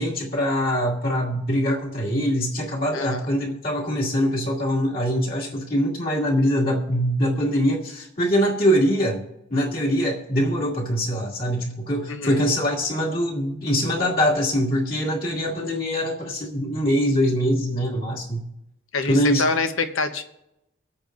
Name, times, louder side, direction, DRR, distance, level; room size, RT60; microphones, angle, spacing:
voice 1, 0.0-9.2 9.5-18.4 19.1-19.4, equal, 45° left, -4 dB, 2.3 m, -23 dB
voice 2, 2.9-3.3 12.1-12.4 18.9-20.2, left 4 dB, 85° left, 7 dB, 1.0 m, -26 dB
24.5 x 8.6 x 2.6 m, 0.87 s
head